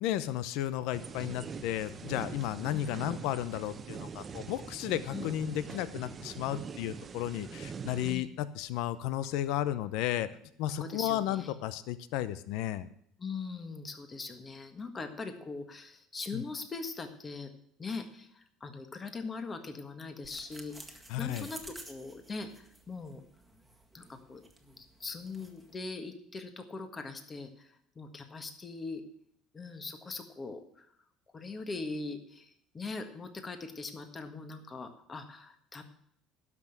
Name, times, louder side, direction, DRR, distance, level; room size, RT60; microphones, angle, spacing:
voice 1, 0.0-10.3 10.6-12.9 16.3-16.4 21.1-21.5, left 12 dB, 75° left, 14 dB, 0.7 m, -33 dB
sound 1, 0.9-8.1, right 5 dB, 30° right, 0.8 m, -43 dB
voice 2, 10.8-11.6 13.2-17.5 17.8-23.2 23.9-24.4 24.8-29.0 29.5-30.9 31.3-35.8, left 4 dB, 25° left, 7 dB, 1.6 m, -41 dB
sound 2, 20.2-25.8, right 1 dB, 5° right, 1.9 m, -52 dB
12.0 x 6.1 x 9.0 m, 0.68 s
cardioid pair, 120°, 0 cm